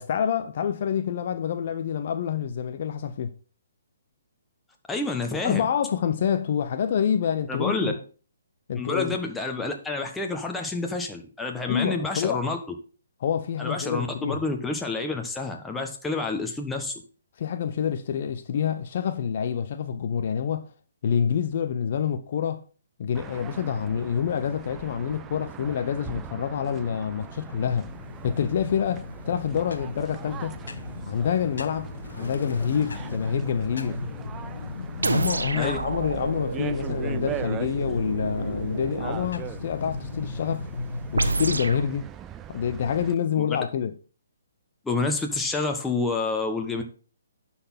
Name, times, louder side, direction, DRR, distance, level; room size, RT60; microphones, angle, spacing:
voice 1, 0.0-3.3 5.4-8.0 8.7-9.2 11.7-12.4 13.2-14.4 17.4-20.7 21.0-22.6 23.0-27.9 28.2-30.6 31.1-34.0 35.0-40.7 41.1-42.1 42.5-44.0, left 8 dB, 50° left, 0.7 m, -27 dB
voice 2, 4.9-5.7 7.5-7.9 8.7-12.6 13.6-16.9 35.5-35.8 43.4-43.5 44.8-46.8, left 3 dB, 10° left, 1.3 m, -28 dB
BC pittsburgh after loss, 23.1-43.1, right 9 dB, 15° right, 0.5 m, -41 dB
sound 1, 27.0-41.5, left 3 dB, 70° left, 1.2 m, -37 dB
sound 2, 35.0-39.3 41.1-41.9, right 3 dB, 75° right, 1.0 m, -29 dB
11.5 x 4.3 x 5.7 m
figure-of-eight pair, 135°, 0 cm